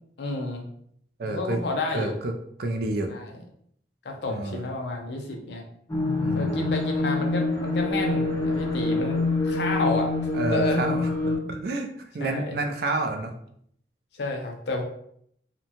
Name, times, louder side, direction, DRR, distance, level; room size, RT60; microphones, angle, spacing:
voice 1, 0.2-0.6 1.2-2.1 3.1-3.3 4.0-5.6 6.3-10.1 10.5-10.9 12.2-12.6 14.1-14.8, left 2 dB, 70° left, 2 dB, 0.5 m, -30 dB
voice 2, 1.2-1.6 1.9-2.3 2.6-3.1 4.3-4.7 6.2-6.7 10.3-11.9 12.1-13.3, right 2 dB, 55° right, 5 dB, 0.4 m, -29 dB
sound 1, 5.9-11.4, left 2 dB, 15° left, 0.4 m, -26 dB
2.7 x 2.1 x 2.8 m, 0.68 s
head